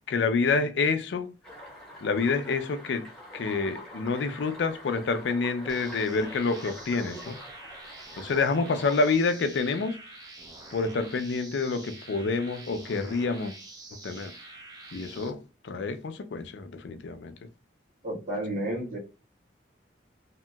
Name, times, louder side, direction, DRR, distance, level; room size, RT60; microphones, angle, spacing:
voice 1, 0.1-1.3 2.0-3.1 3.3-7.4 8.1-10.0 10.7-13.5 13.9-14.3 14.9-17.3, left 4 dB, 70° left, 0.4 m, -28 dB
sound 1, 1.4-9.1, equal, 5° left, 0.9 m, -45 dB
sound 2, 5.7-15.3, right 2 dB, 20° right, 0.5 m, -47 dB
voice 2, 18.0-19.0, right 1 dB, 45° right, 1.3 m, -31 dB
2.8 x 2.7 x 2.2 m
head